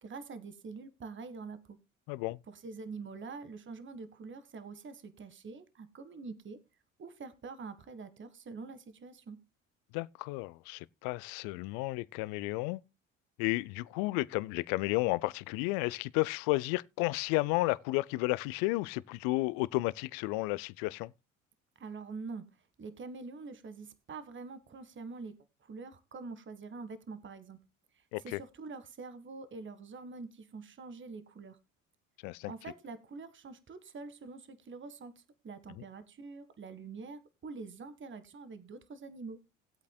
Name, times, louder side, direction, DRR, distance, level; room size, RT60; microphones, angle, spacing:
voice 1, 0.0-1.8 2.5-6.6 7.0-9.4 21.8-22.4 22.8-27.6 28.2-31.6 32.5-39.4, right 4 dB, 30° right, 1.6 m, -45 dB
voice 2, 2.1-2.4 9.9-12.8 13.4-21.1 28.1-28.4 32.2-32.5 35.7-35.8, left 21 dB, 65° left, 0.6 m, -32 dB
19.5 x 8.3 x 2.2 m
hypercardioid pair, 65°, 38 cm